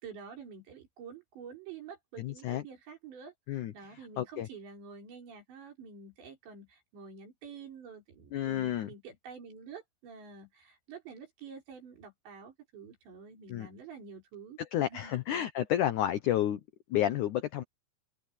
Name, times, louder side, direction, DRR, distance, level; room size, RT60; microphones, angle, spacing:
voice 1, 0.0-15.1, right 6 dB, 90° right, 7.4 m, -48 dB
voice 2, 2.2-2.6 3.5-3.7 4.2-4.5 8.3-8.9 13.5-13.7 14.6-16.6 16.9-17.6, left 12 dB, 85° left, 1.7 m, -30 dB
open air
omnidirectional pair, 4.9 m